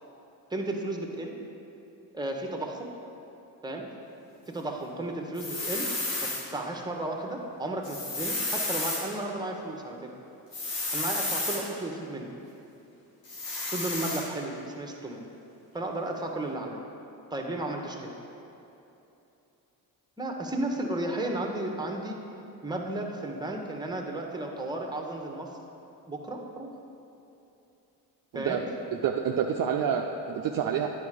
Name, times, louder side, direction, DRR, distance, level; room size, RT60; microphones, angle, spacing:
voice 1, 0.5-1.3 2.1-2.9 3.6-3.9 4.5-5.9 6.2-10.1 10.9-12.3 13.7-15.2 15.7-16.8 17.3-18.1 20.2-22.2 22.6-25.5 26.1-26.7 28.3-28.6, right 2 dB, 10° right, 2 dB, 1.1 m, -33 dB
sound 1, 5.4-6.4 7.8-9.0 10.5-11.6 13.3-14.2, left 2 dB, 90° left, 1.8 m, -31 dB
voice 2, 28.3-30.9, right 8 dB, 45° right, 2 dB, 0.5 m, -28 dB
9.6 x 4.4 x 5.0 m, 2.9 s
hypercardioid pair, 55°, 49 cm